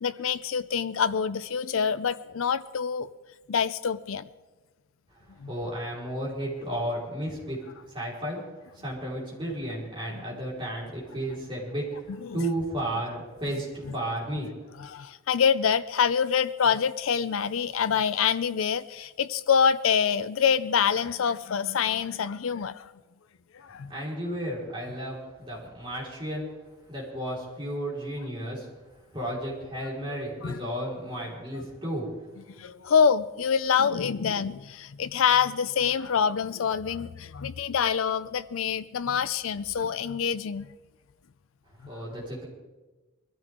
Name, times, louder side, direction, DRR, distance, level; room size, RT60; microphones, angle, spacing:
voice 1, 0.0-3.1 3.5-4.2 5.4-5.5 10.1-10.2 12.2-12.5 14.8-22.9 23.5-23.9 30.4-30.6 31.5-31.6 32.6-40.7, left 7 dB, 80° left, 13 dB, 0.5 m, -26 dB
voice 2, 5.5-7.6 7.9-8.4 8.7-11.9 12.3-14.6 23.9-26.5 26.9-28.7 29.1-32.1 41.9-42.5, right 1 dB, 25° right, -5 dB, 4.7 m, -33 dB
21.0 x 14.0 x 3.7 m, 1.2 s
head